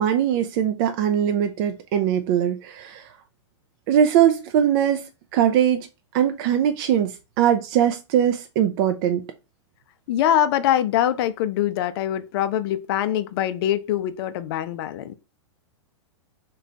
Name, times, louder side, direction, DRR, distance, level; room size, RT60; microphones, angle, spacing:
voice 1, 0.0-3.1 3.9-5.9 6.1-9.2, right 9 dB, 45° right, 0.4 m, -21 dB
voice 2, 10.1-15.1, left 11 dB, 55° left, 0.4 m, -23 dB
3.1 x 2.2 x 3.8 m
hypercardioid pair, 125°, 16 cm